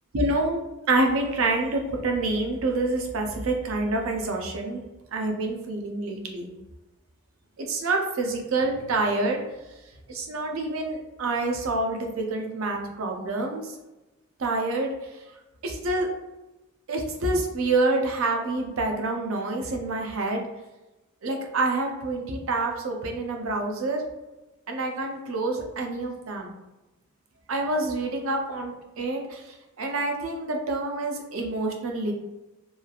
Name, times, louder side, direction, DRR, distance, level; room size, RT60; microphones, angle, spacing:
voice 1, 0.1-0.6 0.9-4.8 5.1-6.5 7.6-9.4 10.1-13.7 14.4-14.9 15.6-16.1 16.9-20.5 21.2-24.1 24.7-26.5 27.5-32.1, right 2 dB, 75° right, 2 dB, 0.5 m, -27 dB
3.0 x 2.3 x 2.4 m, 1.0 s
head